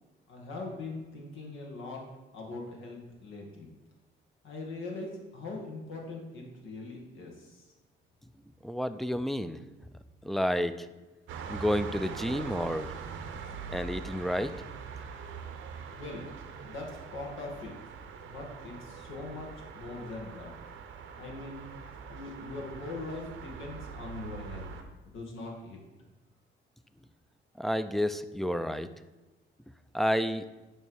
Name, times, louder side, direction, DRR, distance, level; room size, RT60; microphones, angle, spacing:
voice 1, 0.3-2.0 2.3-3.7 4.4-7.6 15.9-16.3 16.6-17.7 18.2-20.5 21.2-21.7 22.1-24.7 25.0-25.8, left 3 dB, 80° left, 0 dB, 1.6 m, -41 dB
voice 2, 8.6-9.6 10.2-10.9 11.5-12.9 13.7-14.6 27.6-28.9 29.9-30.5, equal, ahead, 12 dB, 0.4 m, -30 dB
sound 1, 11.3-24.8, right 6 dB, 85° right, 0.8 m, -43 dB
9.2 x 3.2 x 5.4 m, 1.1 s
cardioid pair, 90°, 20 cm